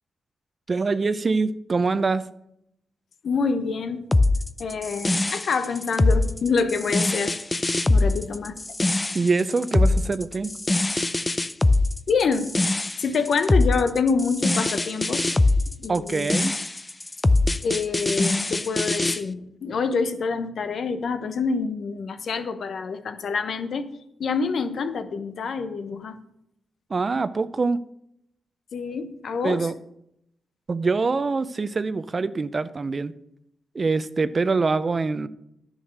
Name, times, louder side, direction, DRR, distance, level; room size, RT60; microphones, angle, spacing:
voice 1, 0.7-2.3 9.1-10.5 15.9-16.5 26.9-27.8 29.4-29.7 30.7-33.1 33.7-35.3, right 4 dB, 45° right, 15 dB, 0.6 m, -24 dB
voice 2, 3.2-4.0 4.6-7.4 7.6-8.6 12.1-12.5 13.0-15.3 15.8-16.3 17.6-23.9 24.2-26.2 28.7-29.7, left 5 dB, 70° left, 10 dB, 1.0 m, -26 dB
sound 1, 4.1-19.2, left 2 dB, 25° left, 0.5 m, -22 dB
10.0 x 6.4 x 6.6 m, 0.78 s
supercardioid pair, 50°, 0 cm